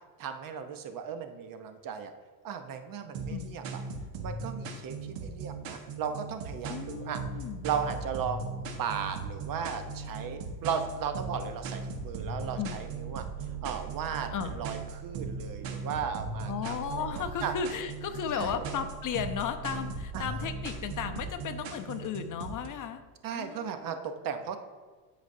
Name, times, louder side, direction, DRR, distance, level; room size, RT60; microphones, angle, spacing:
voice 1, 0.2-2.1 2.4-3.8 4.2-7.2 7.6-13.2 13.6-17.5 18.4-18.6 20.1-20.4 23.2-24.6, right 7 dB, 40° right, 7 dB, 0.8 m, -36 dB
sound 1, 3.1-22.7, right 4 dB, 60° right, 1.4 m, -39 dB
voice 2, 6.7-7.7 12.6-12.7 14.3-14.6 16.5-23.0 23.3-24.0, left 7 dB, 40° left, 8 dB, 0.7 m, -35 dB
sound 2, 6.9-21.3, right 5 dB, 85° right, 1.0 m, -44 dB
12.5 x 5.0 x 2.7 m, 1.4 s
supercardioid pair, 100°, 49 cm